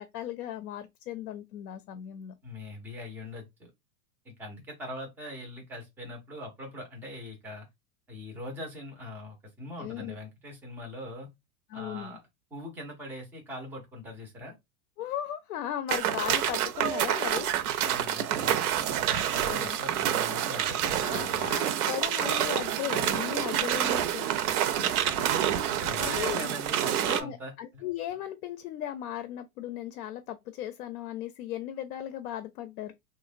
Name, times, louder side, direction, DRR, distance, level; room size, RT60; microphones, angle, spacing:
voice 1, 0.0-2.4 9.8-10.2 11.7-12.2 15.0-17.5 19.4-19.8 21.0-24.3 26.0-26.5 27.0-32.9, left 11 dB, 85° left, 0.5 m, -36 dB
voice 2, 2.4-3.7 4.2-7.7 8.1-11.3 11.7-12.2 12.5-14.6 17.8-21.5 24.8-27.8, left 1 dB, 5° right, 0.3 m, -42 dB
sound 1, 15.9-27.2, right 10 dB, 85° right, 0.6 m, -28 dB
2.9 x 2.1 x 2.4 m
supercardioid pair, 135°, 44 cm